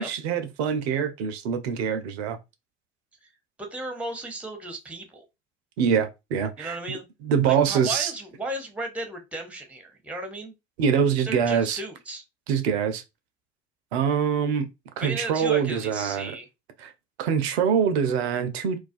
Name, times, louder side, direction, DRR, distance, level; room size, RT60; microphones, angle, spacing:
voice 1, 0.0-2.4 5.8-6.8 7.2-8.1 10.8-11.8 12.5-13.0 13.9-14.7 15.0-16.3 16.8-16.9 17.2-18.8, right 7 dB, 65° right, 0.5 m, -24 dB
voice 2, 3.6-5.2 6.6-7.0 7.5-10.5 11.3-12.2 15.0-16.5, right 2 dB, 5° right, 0.6 m, -35 dB
2.3 x 2.2 x 2.5 m
figure-of-eight pair, 60°, 34 cm